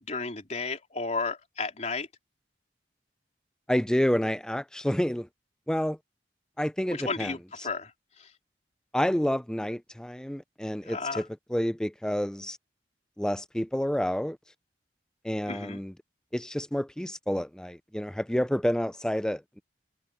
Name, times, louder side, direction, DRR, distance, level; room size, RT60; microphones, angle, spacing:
voice 1, 0.1-2.1 6.9-7.9 8.2-8.3 10.9-11.2 15.5-15.8, left 4 dB, 40° left, 4.0 m, -33 dB
voice 2, 3.7-5.3 5.7-6.0 6.6-7.4 8.9-12.6 13.2-14.4 15.2-15.9 16.3-19.6, equal, 5° left, 0.4 m, -29 dB
head